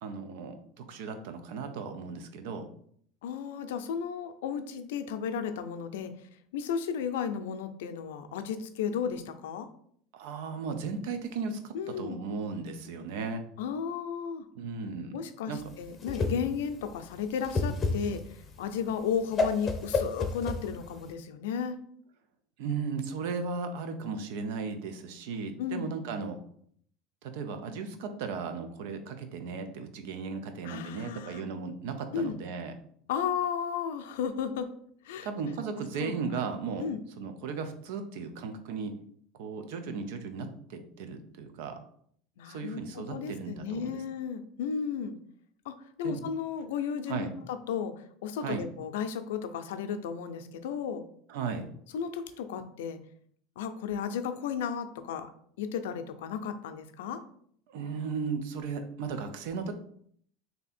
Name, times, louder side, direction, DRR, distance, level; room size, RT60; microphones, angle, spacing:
voice 1, 0.0-2.7 10.1-13.4 14.5-15.1 15.5-15.6 22.6-26.4 27.2-32.7 35.2-36.9 37.2-39.0 39.4-41.8 42.4-44.0 46.0-46.2 47.1-47.3 48.4-48.6 51.3-51.7 57.7-59.7, right 5 dB, 75° right, 8 dB, 0.6 m, -36 dB
voice 2, 3.2-6.1 6.5-9.7 11.7-12.2 13.6-14.5 15.1-21.8 25.6-25.9 30.6-31.4 32.1-32.4 33.1-34.7 35.0-35.3 36.0-36.1 36.8-37.0 42.4-45.2 45.7-51.0 51.9-53.0 53.6-55.3 55.6-57.2, left 7 dB, 85° left, 8 dB, 0.4 m, -34 dB
Whoosh swoosh swish, 15.6-21.1, left 3 dB, 25° left, 0.6 m, -31 dB
3.3 x 2.8 x 4.2 m, 0.63 s
supercardioid pair, 120°, 0 cm